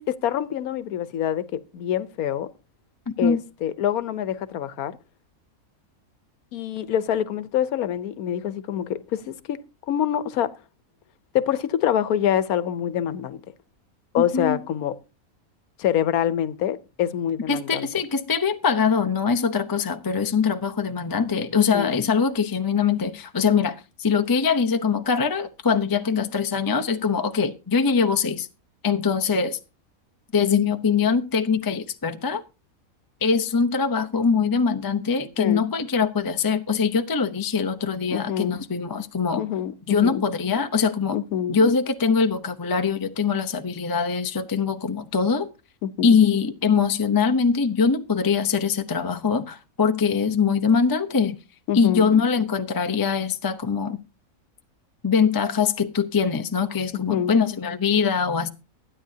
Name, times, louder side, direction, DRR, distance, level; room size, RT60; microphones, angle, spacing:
voice 1, 0.0-2.5 3.2-5.0 6.5-10.5 11.3-13.4 14.1-15.0 15.8-17.9 21.6-21.9 35.4-35.6 38.1-38.6 39.4-40.2 41.1-41.6 45.8-46.2 51.7-52.1 57.1-57.3, left 10 dB, 80° left, 1.3 m, -26 dB
voice 2, 3.1-3.4 14.2-14.6 17.5-28.5 28.8-29.6 30.3-32.4 33.2-39.4 39.9-41.2 41.5-45.5 46.0-51.4 51.7-54.0 55.0-58.5, left 5 dB, 25° left, 0.5 m, -22 dB
22.5 x 9.5 x 2.8 m
omnidirectional pair, 1.5 m